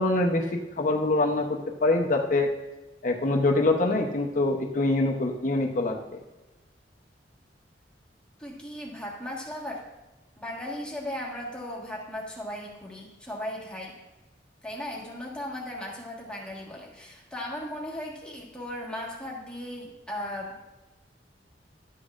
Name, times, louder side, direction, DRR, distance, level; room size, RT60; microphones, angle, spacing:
voice 1, 0.0-2.5 3.0-6.2, left 2 dB, 45° left, 1 dB, 0.8 m, -25 dB
voice 2, 8.4-9.8 10.4-13.9 14.6-20.6, left 1 dB, 5° left, -3 dB, 1.5 m, -37 dB
12.5 x 8.2 x 2.5 m, 1.1 s
head